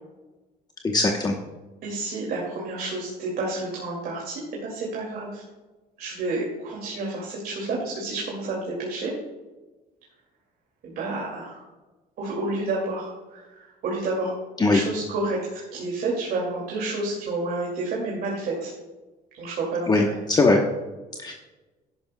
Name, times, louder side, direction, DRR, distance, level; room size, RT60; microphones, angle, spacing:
voice 1, 0.8-1.3 14.6-14.8 19.9-20.6 21.2-21.3, left 3 dB, 25° left, 1 dB, 0.9 m, -20 dB
voice 2, 1.8-5.4 6.0-9.1 10.8-11.6 12.2-14.3 14.6-18.7 19.4-20.1, right 2 dB, 65° right, -3 dB, 2.3 m, -30 dB
11.0 x 10.5 x 2.2 m, 1.2 s
cardioid pair, 110°, 17 cm